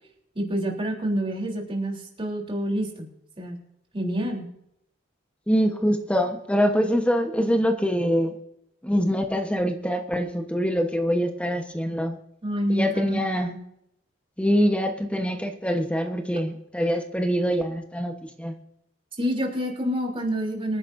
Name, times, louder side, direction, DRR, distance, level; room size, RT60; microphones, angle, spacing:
voice 1, 0.3-3.1 3.4-3.6 3.9-4.5 12.4-13.6 19.2-20.8, equal, 30° right, 0 dB, 3.5 m, -28 dB
voice 2, 5.5-8.3 8.8-12.2 12.7-13.5 14.4-18.5, equal, 5° left, 5 dB, 1.1 m, -24 dB
25.0 x 10.5 x 2.6 m, 0.77 s
head